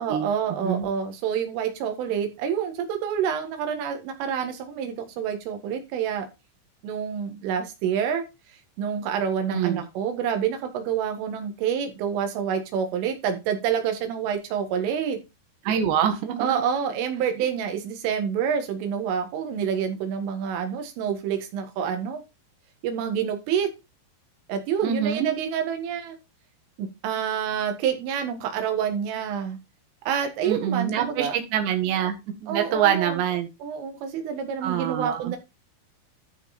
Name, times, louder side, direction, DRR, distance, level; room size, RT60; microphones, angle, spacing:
voice 1, 0.0-6.3 6.8-8.3 8.8-15.2 16.4-22.2 22.8-23.7 24.5-26.2 26.8-29.6 30.1-31.4 32.5-33.2 33.6-35.4, right 8 dB, 85° right, 6 dB, 4.2 m, -27 dB
voice 2, 9.5-9.8 15.7-16.6 24.8-25.3 30.5-32.2 32.4-33.5 34.6-35.3, right 9 dB, 70° right, 6 dB, 3.6 m, -25 dB
12.5 x 5.5 x 4.1 m, 0.25 s
omnidirectional pair, 5.6 m